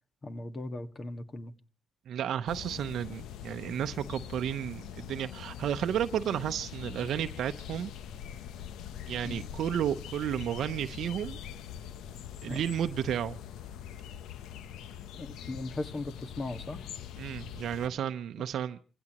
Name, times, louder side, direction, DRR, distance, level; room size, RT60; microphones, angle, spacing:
voice 1, 0.2-1.5 9.2-9.4 12.5-12.6 15.1-16.9, left 2 dB, 35° left, 1.7 m, -38 dB
voice 2, 2.1-7.9 9.1-11.4 12.4-13.4 17.2-18.8, right 9 dB, 70° right, 0.7 m, -32 dB
sound 1, 2.5-17.9, left 9 dB, 85° left, 0.8 m, -43 dB
26.5 x 16.0 x 3.0 m
cardioid pair, 90°, 0 cm